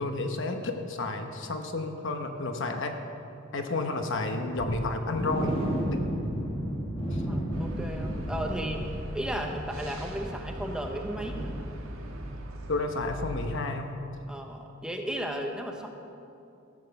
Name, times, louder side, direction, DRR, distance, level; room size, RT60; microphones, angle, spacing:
voice 1, 0.0-3.0 3.5-5.6 5.9-6.1 7.1-7.2 12.7-14.0, left 2 dB, 60° left, 5 dB, 1.0 m, -31 dB
sound 1, 4.6-12.3 12.6-12.8 13.2-13.3, equal, 25° left, 2.0 m, -34 dB
voice 2, 7.3-8.8 9.1-11.5 14.3-15.9, equal, 5° right, 2 dB, 0.9 m, -34 dB
sound 2, 7.5-13.6, right 1 dB, 75° right, 1.5 m, -40 dB
14.0 x 7.4 x 7.0 m, 2.6 s
head